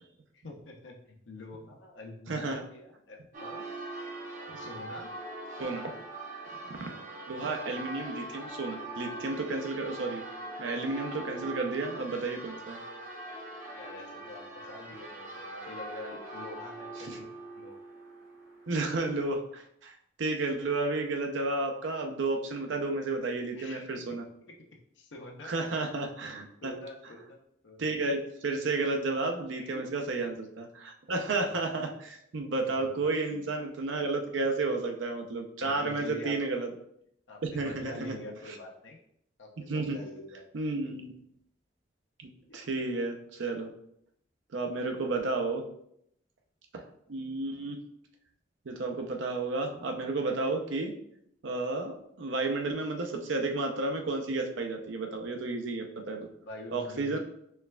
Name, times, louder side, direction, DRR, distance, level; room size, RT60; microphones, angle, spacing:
voice 1, 0.3-3.6 4.5-5.1 13.7-17.3 17.5-17.7 23.6-24.5 24.9-25.5 26.6-27.9 29.5-29.8 31.5-31.6 32.6-33.4 35.6-36.4 37.3-39.0 39.4-40.5 40.9-41.0 42.5-42.6 56.4-57.2, left 2 dB, 85° left, 1 dB, 0.7 m, -46 dB
voice 2, 2.3-2.6 4.5-4.6 5.6-5.9 6.8-6.9 7.3-10.2 10.6-12.8 17.1-17.2 18.7-19.9 20.2-24.2 25.4-26.7 27.8-36.7 37.4-38.1 39.7-40.0 40.5-41.1 42.2-42.3 42.5-43.7 44.5-45.6 47.1-47.8 48.7-50.9 51.4-56.3 56.7-57.2, right 3 dB, 90° right, 3 dB, 0.6 m, -32 dB
Church bell, 3.3-19.1, right 2 dB, 45° right, 0.8 m, -42 dB
4.5 x 3.3 x 2.3 m, 0.73 s
head